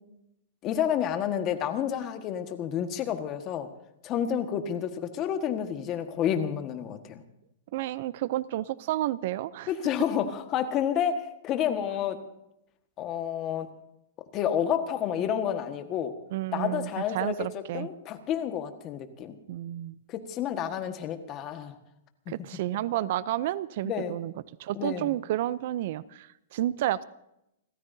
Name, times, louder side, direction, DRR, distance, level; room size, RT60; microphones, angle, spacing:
voice 1, 0.6-3.7 4.0-7.2 9.7-12.2 13.0-13.7 14.3-16.1 16.5-17.4 17.7-19.4 20.1-21.7 23.8-24.2 24.7-25.1, left 9 dB, 25° left, 7 dB, 1.5 m, -30 dB
voice 2, 7.7-9.7 16.3-17.9 19.5-20.0 22.3-24.3 24.6-27.0, right 14 dB, 50° right, 18 dB, 0.5 m, -31 dB
30.0 x 14.0 x 2.7 m, 0.82 s
supercardioid pair, 165°, 0 cm